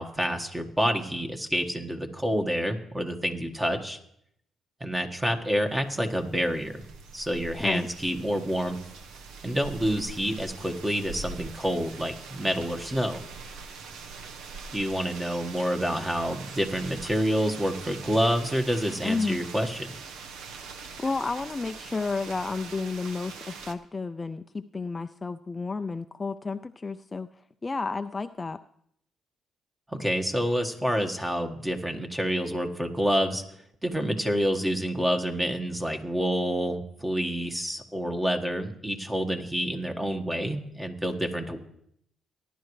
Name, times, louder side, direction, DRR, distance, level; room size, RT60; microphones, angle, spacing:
voice 1, 0.0-4.0 4.8-6.8 7.1-8.8 9.4-13.2 14.7-19.9 29.9-33.4 33.8-41.6, equal, 10° right, 5 dB, 1.6 m, -28 dB
sound 1, 5.6-23.7, right 5 dB, 85° right, 0.9 m, -43 dB
voice 2, 19.0-19.4 21.0-27.3 27.6-28.6, left 4 dB, 25° left, 9 dB, 0.4 m, -31 dB
18.5 x 11.0 x 3.2 m, 0.72 s
cardioid pair, 90°, 0 cm